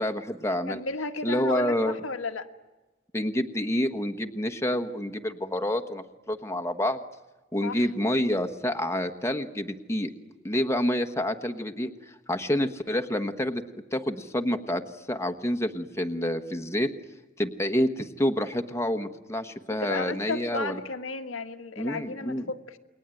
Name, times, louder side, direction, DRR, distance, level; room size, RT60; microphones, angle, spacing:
voice 1, 0.0-0.8 1.2-1.9 3.1-7.0 7.5-10.1 10.4-13.6 13.9-14.8 15.1-16.9 17.4-20.8 21.8-22.4, left 1 dB, 15° left, 7 dB, 1.3 m, -28 dB
voice 2, 0.7-2.5 7.6-7.9 19.7-22.8, left 3 dB, 85° left, 6 dB, 1.6 m, -33 dB
29.0 x 22.0 x 9.1 m, 1.1 s
head